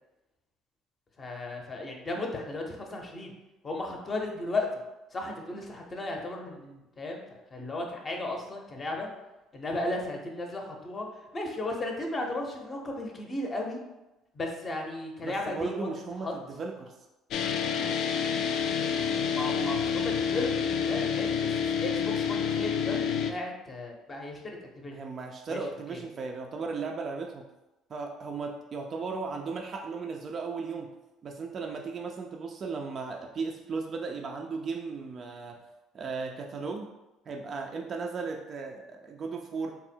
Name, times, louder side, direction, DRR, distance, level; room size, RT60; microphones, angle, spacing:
voice 1, 1.2-3.3 3.6-4.7 5.1-7.2 7.5-9.1 9.5-11.1 11.3-13.8 14.3-16.3 19.3-25.0 25.5-25.6 25.9-26.0, left 2 dB, 30° left, 1 dB, 0.6 m, -35 dB
voice 2, 15.2-16.9 19.5-19.7 24.9-27.4 27.9-30.9 31.2-35.6 35.9-36.9 37.3-39.8, right 4 dB, 40° right, 2 dB, 0.3 m, -36 dB
sound 1, 17.3-23.3, left 7 dB, 60° left, 0.3 m, -28 dB
3.4 x 2.1 x 4.3 m, 0.99 s
cardioid pair, 110°, 0 cm